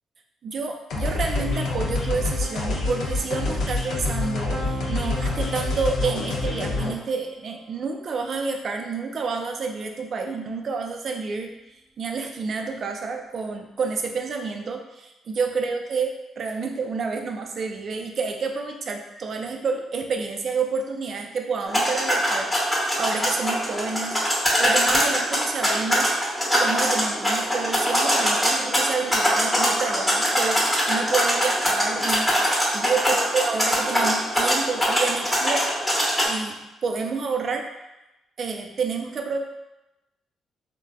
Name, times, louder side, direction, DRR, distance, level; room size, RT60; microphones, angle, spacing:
voice 1, 0.4-11.5 12.0-24.2 24.6-32.3 32.7-35.7 36.2-36.5 36.8-37.6 38.4-39.4, right 4 dB, 50° right, 3 dB, 0.4 m, -29 dB
sound 1, 0.9-6.9, left 2 dB, 75° left, 0.5 m, -26 dB
Piano, 4.5-10.3, right 3 dB, 35° right, 0.7 m, -43 dB
sound 2, 21.7-36.2, equal, 5° left, 0.9 m, -23 dB
3.2 x 2.1 x 2.4 m, 0.96 s
cardioid pair, 90°, 0 cm